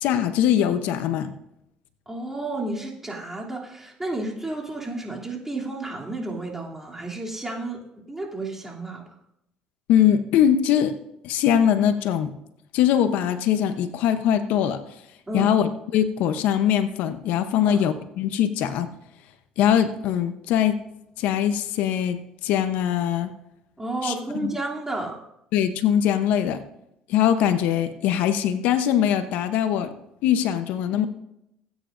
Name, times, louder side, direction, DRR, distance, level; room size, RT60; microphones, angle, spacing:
voice 1, 0.0-1.3 9.9-11.0 11.2-12.3 12.7-14.8 15.3-18.9 19.6-20.8 21.2-23.3 24.0-24.5 25.5-26.6 27.1-29.9 30.2-31.1, left 9 dB, 75° left, 10 dB, 0.8 m, -22 dB
voice 2, 2.1-7.8 8.1-9.0 15.3-15.5 17.5-17.8 23.8-25.2, right 2 dB, 15° right, -2 dB, 2.9 m, -31 dB
18.5 x 9.2 x 2.6 m, 0.80 s
supercardioid pair, 80°, 3 cm